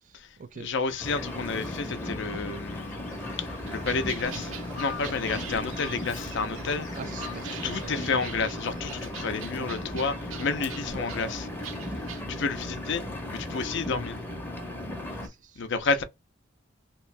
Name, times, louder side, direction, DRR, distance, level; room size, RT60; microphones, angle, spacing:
voice 1, 0.0-0.7 6.9-8.1 15.2-15.7, right 6 dB, 40° right, 0.3 m, -44 dB
voice 2, 0.6-3.0 3.4-6.9 7.6-11.5 12.3-14.2 15.6-16.0, left 4 dB, 60° left, 0.5 m, -30 dB
Bird vocalization bird call bird song, 0.9-8.1, left 5 dB, 40° left, 0.9 m, -46 dB
Engine, 1.0-15.3, left 1 dB, 10° left, 0.7 m, -36 dB
sound 1, 3.7-12.2, right 8 dB, 75° right, 0.7 m, -44 dB
3.0 x 2.6 x 3.2 m
head